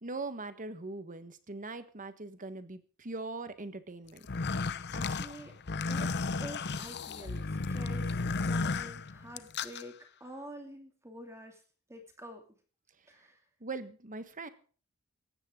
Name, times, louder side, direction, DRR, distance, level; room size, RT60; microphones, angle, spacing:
voice 1, 0.0-4.3 13.6-14.5, right 3 dB, 40° right, 11 dB, 1.4 m, -41 dB
sound 1, 4.2-9.8, left 3 dB, 55° left, 0.8 m, -34 dB
voice 2, 4.5-11.6 11.9-12.4 13.1-13.4, equal, 15° right, 4 dB, 2.6 m, -48 dB
17.5 x 14.5 x 3.8 m, 0.40 s
head